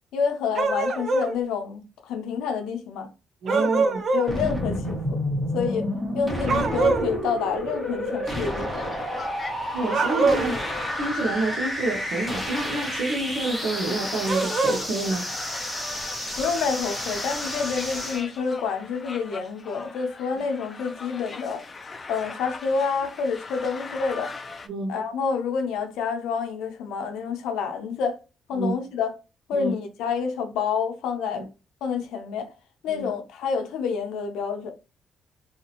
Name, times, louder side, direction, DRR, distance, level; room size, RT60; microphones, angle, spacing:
voice 1, 0.1-3.1 3.6-3.7 4.1-5.2 5.5-5.9 6.1-8.9 10.3-10.4 16.4-21.7 22.1-24.4 24.9-28.2 28.5-29.1 29.5-31.5 31.8-32.5 32.8-34.7, left 6 dB, 90° left, 0.5 m, -28 dB
sound 1, 0.5-1.3 3.5-4.3 6.5-7.1 9.8-10.6 14.2-14.8, right 3 dB, 55° right, 0.6 m, -24 dB
voice 2, 3.4-4.0 9.7-10.6 11.0-15.3 24.7-24.9 28.5-28.7 29.5-29.7 31.3-31.5 32.9-33.1, right 2 dB, 70° right, 0.9 m, -28 dB
sound 2, 4.3-18.2, equal, 5° right, 1.2 m, -30 dB
sound 3, 8.4-24.7, left 4 dB, 35° left, 0.5 m, -39 dB
2.7 x 2.5 x 2.8 m
cardioid pair, 90°, 0 cm